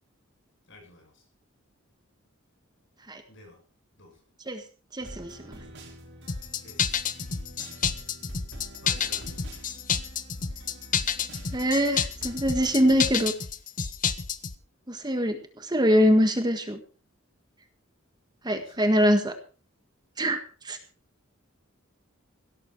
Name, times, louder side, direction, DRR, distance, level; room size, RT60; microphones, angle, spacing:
voice 1, 0.7-1.2 3.3-3.6 4.0-4.2 6.6-7.0 8.8-9.3 18.5-18.8, left 2 dB, 60° left, 3 dB, 7.8 m, -50 dB
voice 2, 4.9-5.6 11.5-13.3 14.9-16.8 18.4-19.3 20.2-20.4 20.7-20.8, equal, 20° right, 7 dB, 1.6 m, -23 dB
sound 1, 5.0-13.3, equal, 55° right, 4.9 m, -45 dB
sound 2, 6.3-14.6, left 7 dB, 40° left, 0.9 m, -29 dB
17.0 x 13.0 x 4.6 m, 0.37 s
head